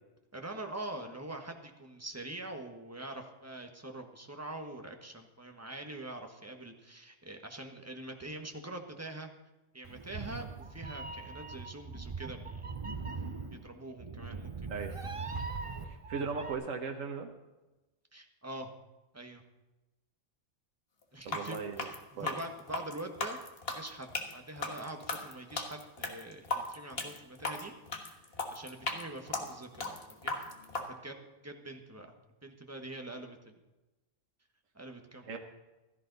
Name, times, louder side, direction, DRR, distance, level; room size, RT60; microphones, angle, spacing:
voice 1, 0.3-9.3 9.7-12.7 13.5-15.1 18.1-18.7 19.1-19.4 21.1-23.4 23.7-28.2 28.5-30.5 30.7-33.6 34.7-35.4, right 1 dB, 10° right, 4 dB, 1.3 m, -44 dB
Meow, 9.8-16.5, right 4 dB, 30° right, 0.8 m, -41 dB
voice 2, 15.8-17.3 21.2-21.9 22.2-22.4 35.2-35.4, right 5 dB, 80° right, 3 dB, 1.4 m, -38 dB
sound 1, 21.2-30.9, left 3 dB, 50° left, 1.7 m, -37 dB
16.0 x 14.0 x 4.0 m, 1.1 s
omnidirectional pair, 1.3 m